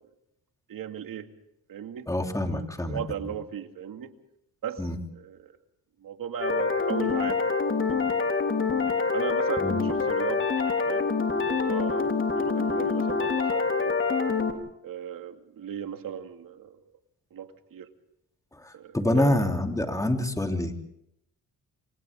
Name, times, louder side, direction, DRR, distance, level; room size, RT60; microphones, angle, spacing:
voice 1, 0.7-1.3 1.7-2.1 2.5-4.1 4.6-4.9 5.2-5.5 6.0-8.0 9.1-10.5 10.9-14.0 14.8-16.8 17.3-17.9 18.7-19.5, right 9 dB, 65° right, 6 dB, 2.4 m, -37 dB
voice 2, 2.1-3.0 4.8-5.0 9.6-9.8 18.6-20.8, left 1 dB, 10° left, 3 dB, 3.3 m, -26 dB
sound 1, 6.4-14.5, left 4 dB, 35° left, 3.7 m, -26 dB
28.5 x 25.5 x 3.7 m, 0.78 s
cardioid pair, 100°, 36 cm